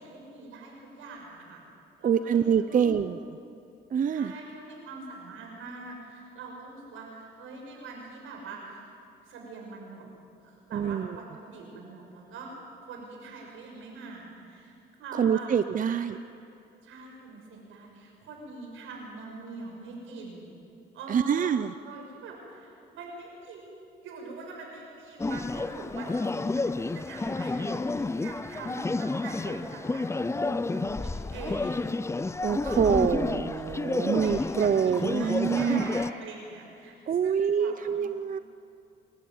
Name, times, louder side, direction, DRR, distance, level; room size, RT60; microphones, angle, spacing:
voice 1, 0.0-1.6 2.0-2.4 2.7-3.0 4.1-8.9 9.2-10.0 10.4-12.5 12.8-15.5 15.9-16.0 16.8-20.5 20.9-23.6 24.0-31.9 32.6-33.3 33.5-33.7 34.0-36.9 37.2-37.9, right 3 dB, 85° right, 0 dB, 6.4 m, -43 dB
voice 2, 2.0-3.2 3.9-4.3 10.7-11.1 15.2-16.2 21.1-21.7 32.4-35.8 37.1-38.4, right 7 dB, 40° right, 12 dB, 0.6 m, -25 dB
sound 1, 25.2-36.1, left 3 dB, 15° left, 0.6 m, -30 dB
27.0 x 13.5 x 9.5 m, 2.6 s
cardioid pair, 90°, 20 cm